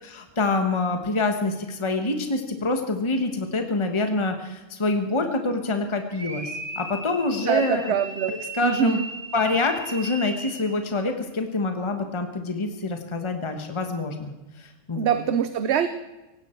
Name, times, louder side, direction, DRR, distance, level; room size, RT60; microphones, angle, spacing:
voice 1, 0.0-7.9 8.3-9.0 9.3-15.2, left 3 dB, 25° left, 5 dB, 1.4 m, -26 dB
sound 1, 6.1-10.8, right 3 dB, 45° right, 2.1 m, -37 dB
voice 2, 7.4-8.3 8.6-9.0 14.9-15.9, right 8 dB, 65° right, 11 dB, 1.0 m, -24 dB
18.0 x 16.5 x 4.5 m, 1.1 s
omnidirectional pair, 1.3 m